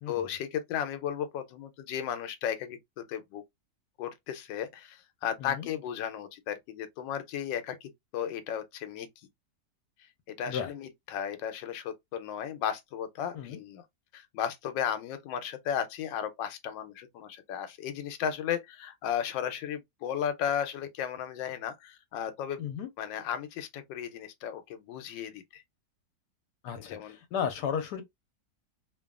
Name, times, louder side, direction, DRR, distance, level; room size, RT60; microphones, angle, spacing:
voice 1, 0.1-3.4 4.0-9.1 10.3-13.8 14.1-22.7 23.0-25.6 26.7-27.2, left 9 dB, 90° left, 1.3 m, -35 dB
voice 2, 22.6-22.9 26.6-27.0 27.3-28.0, left 8 dB, 70° left, 1.2 m, -33 dB
3.0 x 2.2 x 2.3 m
omnidirectional pair, 1.9 m